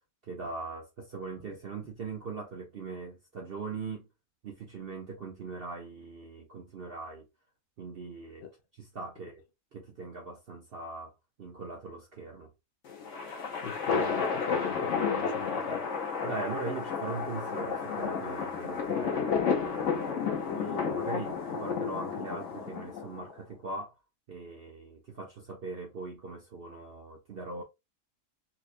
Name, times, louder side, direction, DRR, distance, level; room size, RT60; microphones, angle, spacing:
voice 1, 0.2-4.1 4.4-7.3 7.8-8.4 8.8-9.3 9.7-11.1 11.4-12.5 16.2-23.9 24.3-27.6, right 3 dB, 60° right, 0.6 m, -40 dB
sound 1, 12.8-23.3, left 6 dB, 55° left, 1.1 m, -32 dB
voice 2, 13.6-15.9, left 7 dB, 80° left, 0.5 m, -40 dB
4.1 x 2.4 x 2.5 m
omnidirectional pair, 1.7 m